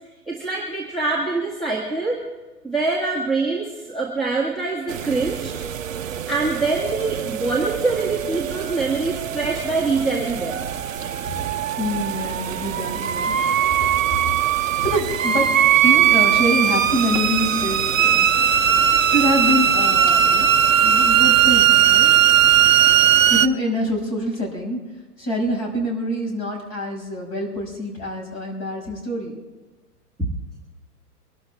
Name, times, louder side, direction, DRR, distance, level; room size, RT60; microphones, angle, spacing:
voice 1, 0.3-2.2 2.6-5.5 6.3-10.7 30.2-30.4, right 3 dB, ahead, -2 dB, 1.8 m, -24 dB
sound 1, 4.9-23.5, right 9 dB, 55° right, 0.8 m, -19 dB
voice 2, 11.8-13.3 14.8-15.5 15.8-18.3 19.1-20.5 20.8-22.1 23.3-24.8 25.2-29.4, equal, 25° left, 0 dB, 5.9 m, -25 dB
24.5 x 12.0 x 3.5 m, 1.2 s
figure-of-eight pair, 110°, 47 cm